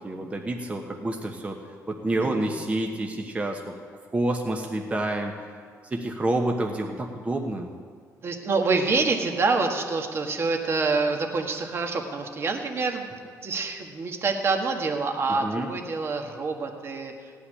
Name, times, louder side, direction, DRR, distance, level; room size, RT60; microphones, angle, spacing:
voice 1, 0.0-1.6 1.9-3.7 4.1-5.3 5.9-7.7 15.4-15.7, right 1 dB, 20° right, 2 dB, 1.1 m, -28 dB
voice 2, 8.2-13.0 13.4-17.1, right 4 dB, 40° right, 4 dB, 1.5 m, -26 dB
16.0 x 5.8 x 9.9 m, 2.1 s
cardioid pair, 110°, 6 cm